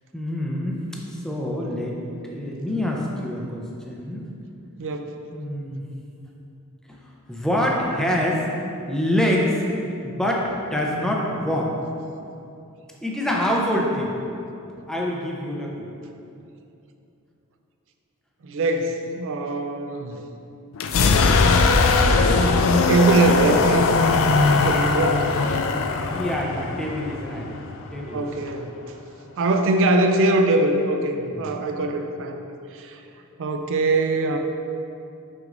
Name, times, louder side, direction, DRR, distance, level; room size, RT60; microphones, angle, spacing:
voice 1, 0.1-0.9 1.1-2.0 2.2-4.3 5.3-5.8 6.9-7.0 7.3-8.5 8.9-9.6 10.0-11.7 13.0-14.1 14.9-15.9 26.1-27.6 27.9-28.3 31.1-31.5, left 1 dB, 5° left, -2 dB, 0.6 m, -26 dB
voice 2, 4.8-5.1 18.4-20.2 22.7-23.9 24.5-25.3 28.1-28.7 29.4-32.4 32.8-32.9 33.4-34.4, right 2 dB, 60° right, 5 dB, 0.4 m, -22 dB
sound 1, 20.7-28.5, left 4 dB, 65° left, 0.4 m, -20 dB
6.2 x 6.1 x 2.6 m, 2.7 s
head